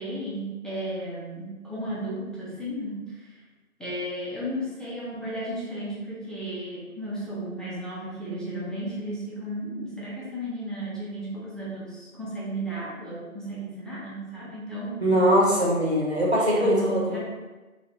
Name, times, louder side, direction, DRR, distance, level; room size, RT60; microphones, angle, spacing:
voice 1, 0.0-3.3 3.8-15.0 16.4-17.2, right 1 dB, ahead, -8 dB, 0.5 m, -34 dB
voice 2, 15.0-17.2, equal, 50° right, -5 dB, 0.6 m, -21 dB
3.1 x 2.0 x 2.6 m, 1.2 s
figure-of-eight pair, 180°, 44 cm